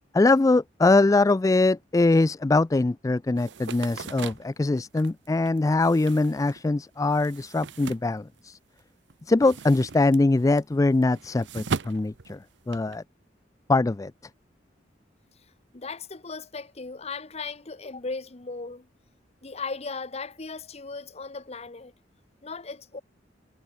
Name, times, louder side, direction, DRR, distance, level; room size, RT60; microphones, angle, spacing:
voice 1, 0.1-8.6 9.3-12.4 12.7-13.0 13.7-14.1, left 2 dB, 20° left, 0.3 m, -22 dB
sound 1, 3.4-8.8 9.1-13.0, right 4 dB, 85° right, 0.7 m, -38 dB
voice 2, 15.7-18.9 19.4-21.9 22.4-23.0, left 4 dB, 35° left, 1.1 m, -37 dB
head